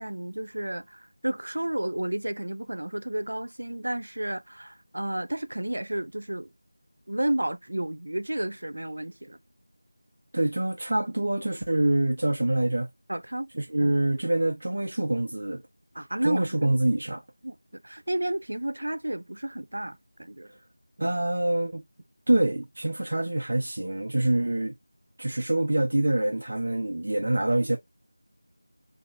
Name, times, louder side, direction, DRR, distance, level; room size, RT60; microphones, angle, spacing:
voice 1, 0.0-6.5 7.1-9.4 13.1-13.5 13.8-13.9 15.9-16.8 17.4-20.5, right 1 dB, 75° right, 0.4 m, -32 dB
voice 2, 10.3-12.9 13.5-15.6 16.2-17.2 21.0-21.8 22.3-24.7 25.2-27.8, right 1 dB, 55° right, 1.0 m, -25 dB
4.0 x 3.7 x 2.8 m
figure-of-eight pair, 175°, 0 cm